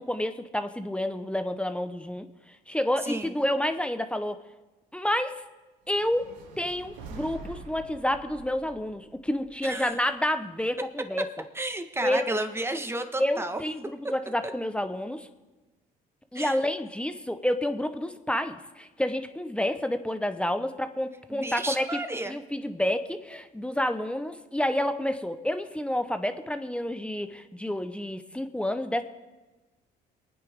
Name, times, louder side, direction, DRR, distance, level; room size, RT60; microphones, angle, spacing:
voice 1, 0.0-4.4 4.9-5.4 5.9-6.2 6.6-11.2 12.0-12.3 13.2-15.3 16.3-29.0, left 1 dB, 5° left, 9 dB, 1.0 m, -29 dB
voice 2, 3.0-3.3 9.6-10.0 11.5-13.6 16.3-16.6 21.3-22.4, right 2 dB, 15° right, 7 dB, 1.5 m, -32 dB
sound 1, 5.9-10.1, right 3 dB, 90° right, 1.7 m, -46 dB
23.5 x 9.7 x 3.6 m, 1.2 s
supercardioid pair, 75°, 18 cm